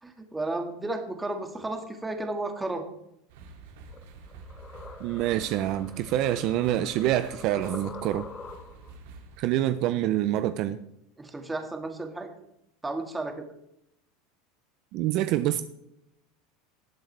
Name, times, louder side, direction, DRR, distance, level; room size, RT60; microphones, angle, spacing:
voice 1, 0.0-2.8 11.2-12.3 12.8-13.5, right 2 dB, 10° right, 5 dB, 1.9 m, -33 dB
sound 1, 3.3-9.4, right 3 dB, 80° right, 2.4 m, -48 dB
sound 2, 3.9-9.0, left 4 dB, 20° left, 1.1 m, -45 dB
voice 2, 5.0-8.3 9.4-10.8 14.9-15.6, right 13 dB, 55° right, 11 dB, 0.6 m, -26 dB
19.0 x 7.9 x 3.4 m, 0.79 s
supercardioid pair, 130°, 0 cm